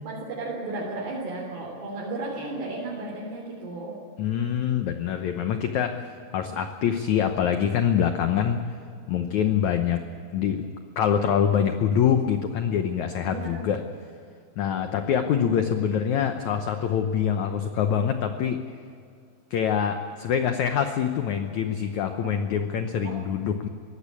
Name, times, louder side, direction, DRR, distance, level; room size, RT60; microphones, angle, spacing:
voice 1, 0.0-4.0 6.3-6.5 13.2-13.7 15.2-15.5 22.2-22.4 23.0-23.2, right 2 dB, 75° right, -4 dB, 5.3 m, -34 dB
voice 2, 4.2-8.6 9.1-10.0 10.3-10.6 11.0-13.8 14.6-18.6 19.5-23.7, left 8 dB, 85° left, 7 dB, 1.6 m, -25 dB
23.0 x 17.0 x 8.6 m, 2.4 s
omnidirectional pair, 4.8 m